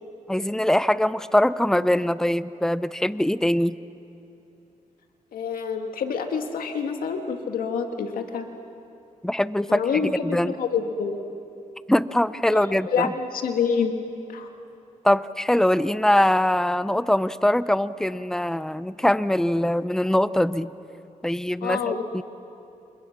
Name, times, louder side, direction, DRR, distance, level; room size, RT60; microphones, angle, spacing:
voice 1, 0.3-3.8 9.2-10.5 11.9-13.1 15.0-20.7 21.2-22.2, left 1 dB, 5° left, 15 dB, 0.7 m, -22 dB
voice 2, 5.3-8.4 9.7-11.2 12.5-13.9 14.3-14.5 21.6-22.0, left 6 dB, 90° left, 5 dB, 2.0 m, -27 dB
29.0 x 28.0 x 6.0 m, 2.9 s
cardioid pair, 70°, 14 cm